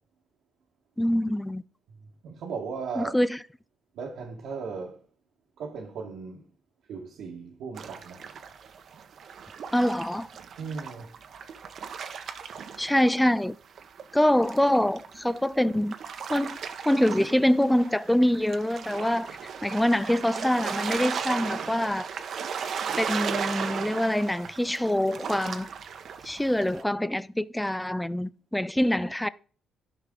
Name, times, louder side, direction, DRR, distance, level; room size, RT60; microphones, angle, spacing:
voice 1, 1.0-1.6 3.0-3.4 9.7-10.3 12.8-13.6 14.1-15.9 16.3-16.6 16.8-22.1 23.0-25.7 26.2-29.3, left 1 dB, 5° left, 0.4 m, -25 dB
voice 2, 2.2-3.1 4.0-5.0 5.6-6.4 6.9-8.2 10.6-11.1, right 5 dB, 80° right, 1.5 m, -36 dB
sound 1, 7.7-13.4 13.8-26.8, right 7 dB, 60° right, 0.9 m, -36 dB
12.0 x 5.7 x 3.8 m
cardioid pair, 90°, 0 cm